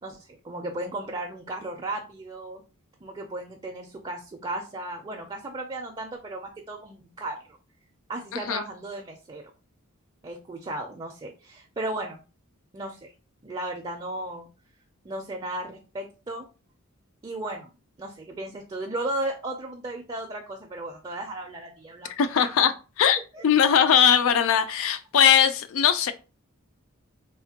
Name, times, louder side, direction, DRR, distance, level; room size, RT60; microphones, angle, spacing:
voice 1, 0.0-2.6 3.0-7.4 8.1-9.5 10.2-12.2 12.7-13.1 13.4-14.5 15.0-16.5 17.2-17.7 18.0-22.5 23.3-23.4, right 1 dB, 25° right, 0.4 m, -35 dB
voice 2, 8.3-8.6 22.2-26.1, left 8 dB, 65° left, 0.4 m, -20 dB
3.3 x 2.1 x 2.8 m
head